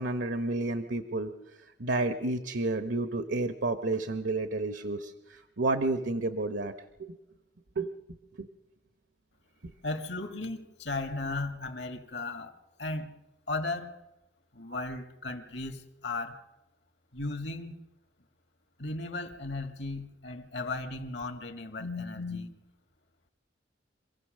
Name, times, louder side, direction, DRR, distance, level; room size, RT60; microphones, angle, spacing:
voice 1, 0.0-1.3 1.8-6.7 7.0-7.2 7.8-7.9 8.4-8.5 9.6-9.7, right 2 dB, 75° right, 9 dB, 0.9 m, -30 dB
voice 2, 9.8-12.5 12.8-13.1 13.5-13.9 14.5-16.4 17.1-17.8 18.8-22.5, left 2 dB, 70° left, 6 dB, 1.9 m, -36 dB
26.5 x 16.0 x 6.5 m, 1.0 s
head